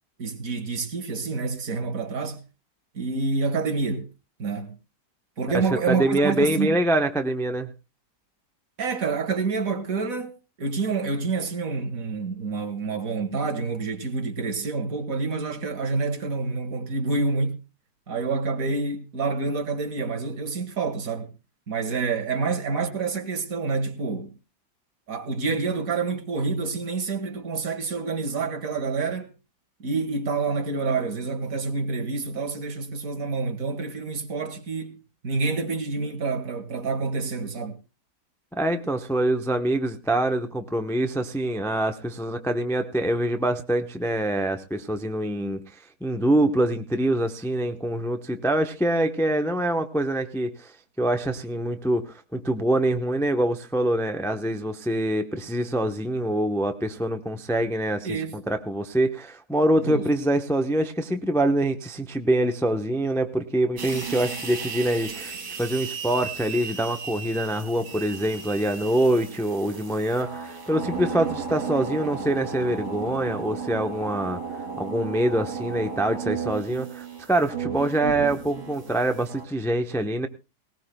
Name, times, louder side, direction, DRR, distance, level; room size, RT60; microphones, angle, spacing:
voice 1, 0.2-2.4 2.9-4.1 4.4-4.8 5.4-6.8 8.8-10.3 10.6-17.6 18.1-21.3 21.7-24.3 25.1-29.3 29.8-37.8 58.0-58.4 59.8-60.0, right 4 dB, 55° right, 2.0 m, -28 dB
voice 2, 5.5-7.7 38.6-74.4 74.8-80.3, right 1 dB, 5° left, 0.5 m, -25 dB
sound 1, 63.8-79.5, right 5 dB, 80° right, 2.9 m, -35 dB
19.0 x 18.5 x 2.2 m
omnidirectional pair, 1.8 m